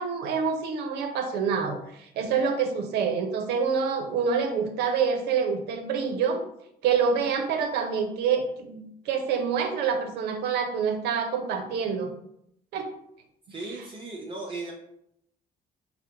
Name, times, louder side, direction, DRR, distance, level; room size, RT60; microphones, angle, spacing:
voice 1, 0.0-6.4 6.8-12.1 12.7-12.9, right 6 dB, 80° right, 6 dB, 0.6 m, -27 dB
voice 2, 13.5-14.7, right 3 dB, 30° right, -2 dB, 0.6 m, -36 dB
4.7 x 2.1 x 2.9 m, 0.75 s
cardioid pair, 110°, 17 cm